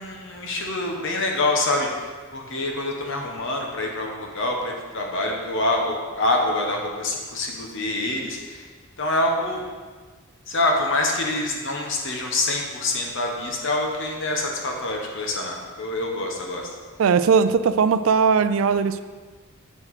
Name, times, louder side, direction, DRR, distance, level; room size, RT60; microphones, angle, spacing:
voice 1, 0.0-8.7 9.0-9.6 10.5-16.7, left 2 dB, 65° left, 1 dB, 1.1 m, -26 dB
voice 2, 17.0-19.0, right 6 dB, 70° right, 13 dB, 0.4 m, -19 dB
7.6 x 5.8 x 4.8 m, 1.4 s
head